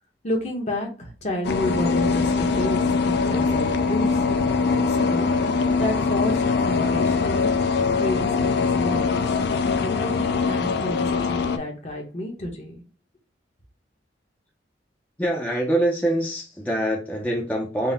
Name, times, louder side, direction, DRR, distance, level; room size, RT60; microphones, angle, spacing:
voice 1, 0.2-5.3 5.8-7.5 7.9-9.2 9.8-12.8, left 1 dB, 40° left, 1 dB, 1.0 m, -30 dB
sound 1, 1.4-11.6, left 4 dB, 60° left, 0.3 m, -22 dB
voice 2, 15.2-17.9, right 1 dB, 10° left, -2 dB, 0.5 m, -24 dB
3.8 x 2.1 x 4.0 m, 0.34 s
head